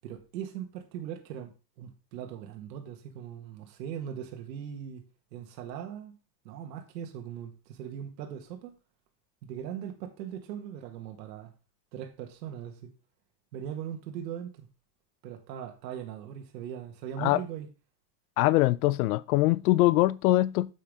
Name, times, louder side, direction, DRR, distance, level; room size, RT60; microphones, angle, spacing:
voice 1, 0.0-5.0 5.3-6.2 6.4-8.8 9.4-11.5 11.9-12.9 13.5-14.7 15.2-17.7, right 9 dB, 85° right, 1.8 m, -40 dB
voice 2, 18.4-20.7, left 18 dB, 65° left, 0.6 m, -23 dB
9.0 x 7.4 x 3.6 m
supercardioid pair, 165°, 49 cm